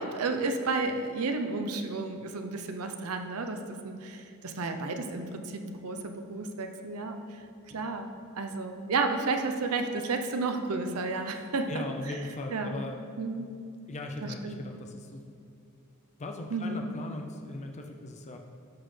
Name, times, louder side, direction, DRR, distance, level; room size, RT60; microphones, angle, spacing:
voice 1, 0.0-7.2 7.7-8.1 8.3-12.2 12.5-12.8 13.2-13.5 14.2-14.6 16.5-16.9, right 3 dB, 80° right, 6 dB, 0.7 m, -32 dB
voice 2, 11.7-13.0 13.9-15.2 16.2-18.4, left 2 dB, 30° left, 3 dB, 0.5 m, -39 dB
12.5 x 6.2 x 3.3 m, 2.4 s
head